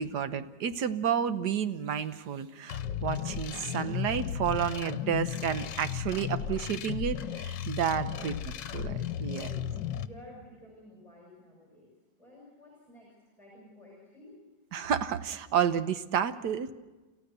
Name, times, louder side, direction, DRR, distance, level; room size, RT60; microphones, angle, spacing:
voice 1, 0.0-9.5 14.7-16.7, right 8 dB, 70° right, 11 dB, 1.4 m, -31 dB
sound 1, 2.7-10.1, left 9 dB, 80° left, 1.5 m, -35 dB
voice 2, 9.3-11.9 12.2-14.4, left 1 dB, 15° left, -3 dB, 6.0 m, -53 dB
28.5 x 14.5 x 6.8 m, 1.2 s
omnidirectional pair, 1.9 m